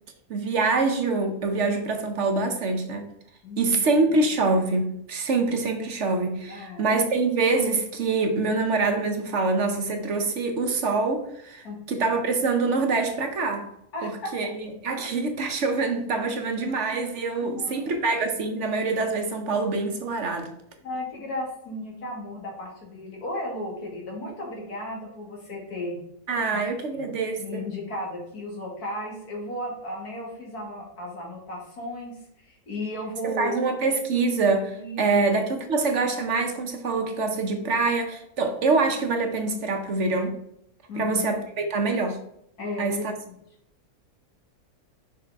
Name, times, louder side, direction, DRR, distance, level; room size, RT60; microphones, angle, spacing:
voice 1, 0.3-3.1 3.6-13.7 14.0-20.5 26.3-27.7 33.2-40.4 40.9-42.2 42.8-43.0, right 3 dB, 55° right, 1.0 m, -25 dB
voice 2, 3.4-3.8 6.5-6.9 11.6-11.8 13.9-14.3 17.4-17.9 20.8-26.0 26.5-26.6 26.9-27.0 27.4-33.6 34.7-35.0 40.9-41.3 42.6-43.0, left 1 dB, 80° left, 2.5 m, -35 dB
6.2 x 4.8 x 3.5 m
omnidirectional pair, 1.6 m